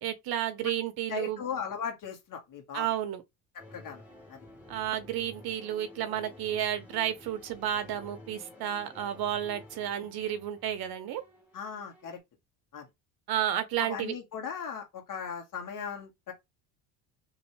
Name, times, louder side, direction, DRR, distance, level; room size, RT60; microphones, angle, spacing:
voice 1, 0.0-1.4 2.7-3.2 4.7-11.2 13.3-14.1, right 11 dB, 55° right, 1.0 m, -32 dB
voice 2, 1.1-2.9 3.7-4.0 4.3-4.4 11.5-12.2 12.7-12.8 13.8-16.3, left 6 dB, 45° left, 1.6 m, -37 dB
sound 1, 3.6-12.2, left 1 dB, 5° right, 1.5 m, -52 dB
3.0 x 2.9 x 3.2 m
supercardioid pair, 90°, 43 cm